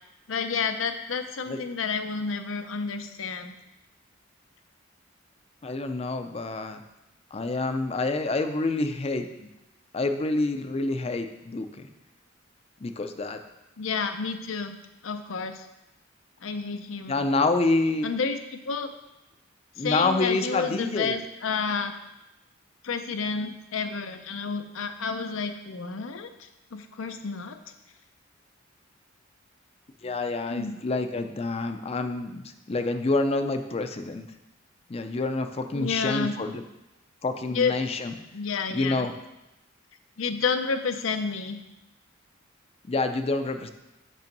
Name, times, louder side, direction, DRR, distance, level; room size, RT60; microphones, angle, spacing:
voice 1, 0.3-3.5 13.8-14.7 15.0-15.7 16.4-17.2 18.0-18.9 19.8-22.0 22.8-27.6 30.5-30.8 35.7-36.3 37.5-37.8 38.3-39.1 40.2-41.6, left 5 dB, 85° left, 8 dB, 0.6 m, -30 dB
voice 2, 5.6-6.8 7.3-9.5 9.9-11.9 12.8-13.4 17.1-18.1 19.8-21.2 30.0-34.3 34.9-36.6 37.2-38.1 38.7-39.1 42.9-43.7, left 3 dB, 30° left, 7 dB, 0.5 m, -27 dB
6.2 x 5.4 x 5.2 m, 0.96 s
head